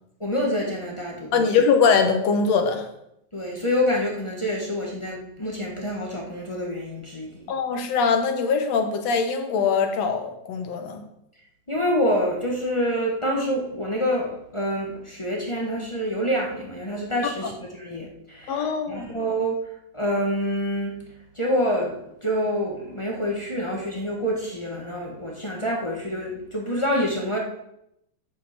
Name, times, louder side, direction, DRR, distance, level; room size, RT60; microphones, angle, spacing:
voice 1, 0.2-1.5 3.3-7.5 11.7-17.5 17.8-19.6 19.9-20.9 21.3-27.4, equal, 40° left, -3 dB, 0.4 m, -27 dB
voice 2, 1.3-2.8 7.5-11.0 17.4-17.5 18.5-19.1, left 5 dB, 65° left, 6 dB, 2.0 m, -22 dB
9.2 x 5.5 x 6.7 m, 0.80 s
omnidirectional pair, 3.6 m